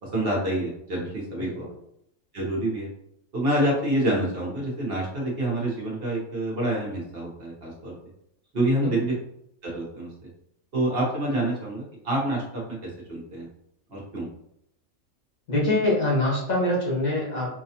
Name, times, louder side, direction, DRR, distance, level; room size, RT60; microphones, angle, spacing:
voice 1, 0.0-1.6 2.3-2.9 3.3-7.9 8.5-9.1 9.6-10.1 10.7-13.5 13.9-14.3, right 1 dB, 50° right, -3 dB, 1.0 m, -27 dB
voice 2, 15.5-17.5, left 1 dB, 85° left, -4 dB, 1.9 m, -24 dB
4.8 x 2.3 x 2.8 m, 0.75 s
omnidirectional pair, 1.4 m